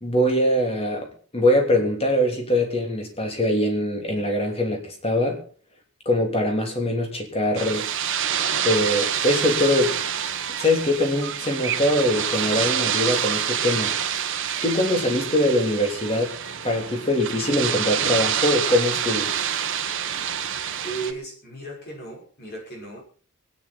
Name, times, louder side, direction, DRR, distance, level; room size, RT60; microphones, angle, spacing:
voice 1, 0.0-5.4 6.0-7.9 8.6-10.0 10.6-13.9 14.6-16.4 16.6-19.3, left 1 dB, 25° left, 3.2 m, -22 dB
sound 1, 7.5-21.1, right 9 dB, 60° right, 1.5 m, -27 dB
voice 2, 20.8-23.0, right 3 dB, 45° left, 5.9 m, -35 dB
24.0 x 9.9 x 4.3 m
head